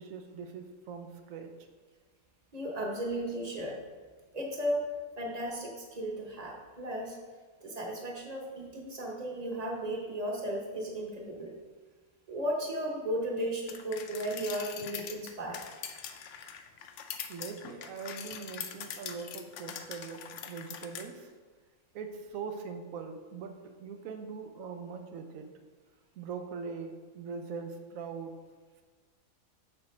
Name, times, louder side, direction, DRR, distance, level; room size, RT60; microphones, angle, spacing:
voice 1, 0.0-1.5 17.3-21.3 21.9-25.5 26.2-28.3, right 5 dB, 70° right, 6 dB, 1.1 m, -41 dB
voice 2, 2.5-3.8 4.3-4.8 5.2-7.2 7.6-11.5 12.3-15.6, right 1 dB, 30° right, 0 dB, 1.0 m, -35 dB
sound 1, 13.7-21.1, left 8 dB, 65° left, 0.8 m, -43 dB
7.5 x 6.0 x 3.2 m, 1.5 s
omnidirectional pair, 1.5 m